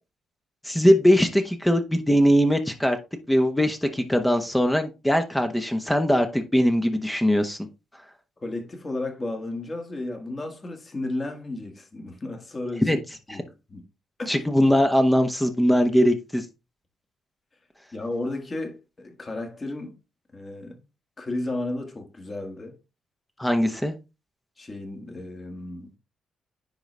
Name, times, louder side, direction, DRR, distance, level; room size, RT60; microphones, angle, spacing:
voice 1, 0.6-3.0 3.3-7.6 12.8-13.0 13.3-13.4 14.3-16.4 23.4-23.9, equal, 5° left, 0.9 m, -21 dB
voice 2, 8.4-13.0 13.3-13.9 14.2-14.3 17.9-20.0 20.3-20.8 21.2-22.8 24.6-25.9, left 2 dB, 30° left, 1.8 m, -33 dB
9.9 x 3.9 x 3.3 m
cardioid pair, 115°, 0 cm